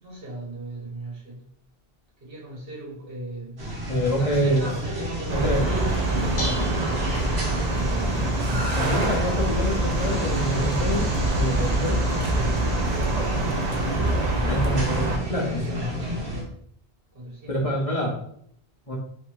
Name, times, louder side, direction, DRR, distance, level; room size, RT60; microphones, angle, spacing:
voice 1, 0.0-1.4 2.2-3.7 4.0-6.8 8.0-8.9 11.8-13.6 15.6-16.3 17.1-17.7 18.0-18.1, right 1 dB, 65° right, -4 dB, 1.7 m, -38 dB
sound 1, 3.6-16.4, right 1 dB, 90° right, 1.5 m, -31 dB
voice 2, 3.9-4.6 5.3-5.7 8.8-11.1 11.3-12.0 14.4-15.8 17.5-18.2 18.9-19.0, equal, 40° left, -3 dB, 0.8 m, -26 dB
sound 2, 5.3-15.2, right 2 dB, 45° right, 0.7 m, -25 dB
Dishes pots and pans, 5.9-13.3, left 2 dB, 60° left, 1.1 m, -39 dB
3.3 x 2.8 x 4.5 m, 0.67 s
omnidirectional pair, 1.0 m